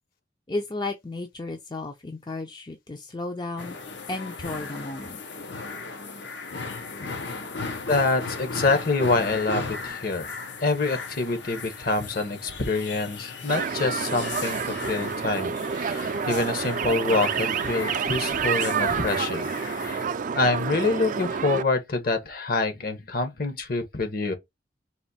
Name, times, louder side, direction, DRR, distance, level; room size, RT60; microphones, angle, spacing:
voice 1, 0.5-3.8 4.1-5.2, left 2 dB, 25° left, 0.5 m, -33 dB
sound 1, 3.6-20.1, left 4 dB, 75° left, 0.9 m, -37 dB
voice 2, 7.9-19.5 19.8-20.0 20.3-24.3, left 3 dB, 55° left, 1.1 m, -26 dB
sound 2, 13.5-21.6, right 6 dB, 45° right, 0.4 m, -28 dB
4.2 x 2.6 x 4.1 m
head